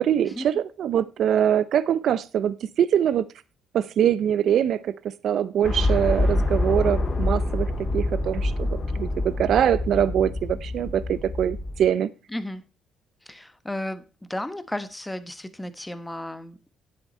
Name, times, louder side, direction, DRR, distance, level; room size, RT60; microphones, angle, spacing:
voice 1, 0.0-3.2 3.7-12.1, right 9 dB, 70° right, 17 dB, 0.5 m, -23 dB
sound 1, 5.6-11.9, left 2 dB, 40° left, 2.5 m, -26 dB
voice 2, 12.3-12.6 13.3-14.0 14.3-16.6, left 1 dB, 10° left, 12 dB, 1.1 m, -33 dB
10.0 x 7.9 x 4.3 m, 0.31 s
cardioid pair, 90°, 0 cm